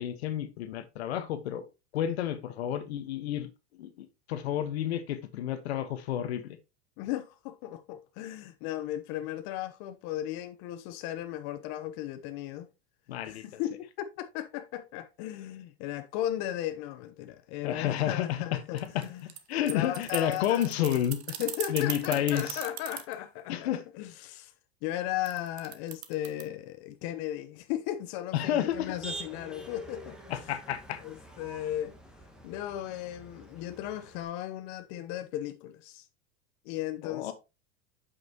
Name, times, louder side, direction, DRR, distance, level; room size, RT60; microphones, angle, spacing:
voice 1, 0.0-1.6 1.9-3.5 3.8-6.6 13.1-13.6 17.6-19.1 19.5-21.2 21.7-22.6 23.5-23.8 28.3-28.9 30.3-31.0 37.0-37.3, left 11 dB, 85° left, 1.3 m, -30 dB
voice 2, 7.0-12.7 13.3-19.2 19.7-20.7 21.4-24.5 24.8-30.4 31.0-32.0 32.4-36.1 36.6-37.3, left 12 dB, 60° left, 0.9 m, -36 dB
sound 1, 18.8-23.1 25.2-26.4, right 11 dB, 85° right, 1.1 m, -38 dB
Motor vehicle (road), 28.7-34.2, right 2 dB, ahead, 1.5 m, -47 dB
8.1 x 5.9 x 2.9 m
supercardioid pair, 115°, 31 cm